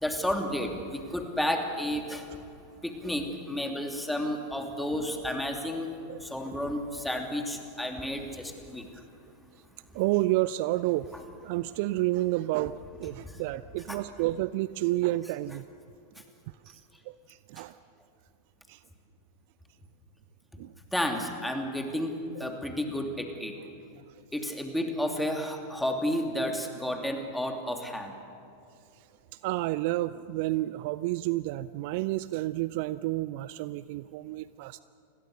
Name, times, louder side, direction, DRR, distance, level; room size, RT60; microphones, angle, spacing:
voice 1, 0.0-2.2 2.8-5.9 6.3-8.9 11.1-11.2 13.9-14.0 20.9-22.1 22.4-23.5 24.3-28.1, left 1 dB, 5° left, 4 dB, 2.9 m, -31 dB
voice 2, 6.1-6.6 9.9-15.6 16.6-17.8 18.7-18.8 20.6-20.7 22.5-22.6 26.9-27.0 29.4-34.8, right 17 dB, 50° right, 16 dB, 0.5 m, -30 dB
28.5 x 21.5 x 6.7 m, 2.7 s
figure-of-eight pair, 90°, 0 cm